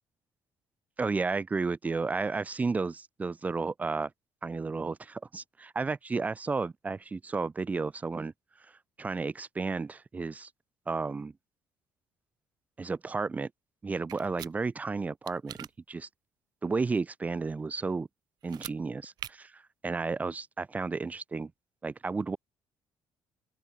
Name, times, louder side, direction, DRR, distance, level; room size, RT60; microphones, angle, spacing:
voice 1, 1.0-4.1 4.4-8.3 9.0-10.5 10.9-11.3 12.8-13.5 13.8-16.1 16.6-18.1 18.4-21.5 21.8-22.4, right 4 dB, 20° right, 2.2 m, -32 dB
sound 1, 14.1-14.5 15.3-15.7 18.4-18.8 19.2-19.3, right 12 dB, 55° right, 2.9 m, -41 dB
open air
cardioid pair, 165°, 8 cm